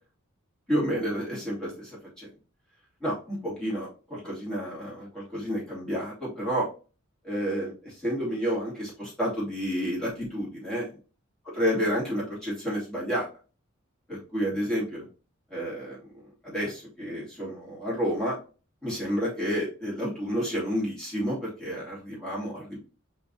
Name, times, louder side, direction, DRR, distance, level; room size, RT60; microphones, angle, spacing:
voice 1, 0.7-2.3 3.0-6.7 7.2-10.9 11.5-13.3 14.1-15.1 15.5-16.0 16.4-18.4 18.8-22.8, equal, 5° left, -8 dB, 2.5 m, -30 dB
4.3 x 4.0 x 2.7 m, 0.35 s
head